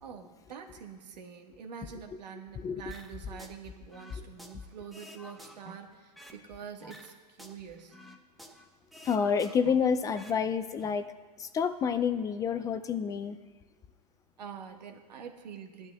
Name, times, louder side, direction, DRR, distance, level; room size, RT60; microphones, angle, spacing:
voice 1, 0.0-8.0 14.4-15.9, right 7 dB, 85° right, 3 dB, 1.6 m, -46 dB
sound 1, 2.9-3.6 3.9-6.4 6.8-8.7 8.9-10.4 10.7-10.9, equal, ahead, 0.8 m, -50 dB
voice 2, 9.0-11.1 11.4-13.4, left 6 dB, 15° left, 12 dB, 0.3 m, -28 dB
19.0 x 11.5 x 2.3 m, 1.4 s
hypercardioid pair, 130°, 21 cm